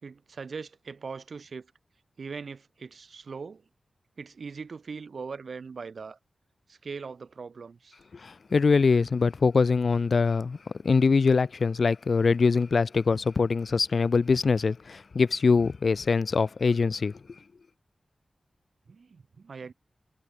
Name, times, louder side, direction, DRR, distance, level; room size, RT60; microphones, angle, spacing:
voice 1, 0.0-1.7 2.2-3.6 4.2-6.2 6.7-8.0 18.9-19.7, right 5 dB, 65° right, 3.3 m, -40 dB
voice 2, 8.2-10.6 10.8-17.1, left 4 dB, 60° left, 1.6 m, -23 dB
wide cardioid pair, 130°, 0 cm